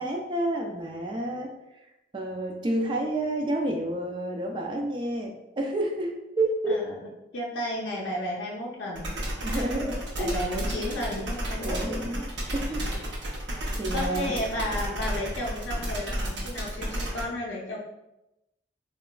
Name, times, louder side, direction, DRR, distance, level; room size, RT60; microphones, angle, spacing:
voice 1, 0.0-1.8 2.1-6.9 9.4-10.4 11.6-12.2 12.5-13.0 13.3-13.4 13.8-14.4, right 1 dB, 25° right, 1 dB, 0.3 m, -30 dB
voice 2, 7.3-9.2 9.5-9.6 10.1-12.1 13.9-17.8, left 1 dB, 85° left, -3 dB, 0.5 m, -33 dB
sound 1, 9.0-17.2, right 1 dB, 80° right, 0.8 m, -32 dB
3.8 x 2.3 x 2.2 m, 0.93 s
head